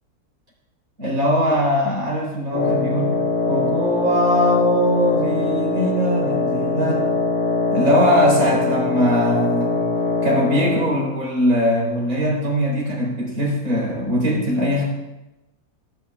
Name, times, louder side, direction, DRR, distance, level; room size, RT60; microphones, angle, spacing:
voice 1, 1.0-3.2 3.5-7.1 7.7-9.8 10.2-14.8, equal, 65° right, -3 dB, 4.0 m, -20 dB
Wind instrument woodwind instrument, 2.5-11.1, left 3 dB, 75° left, 2.1 m, -22 dB
17.0 x 9.8 x 2.3 m, 0.97 s
omnidirectional pair, 1.6 m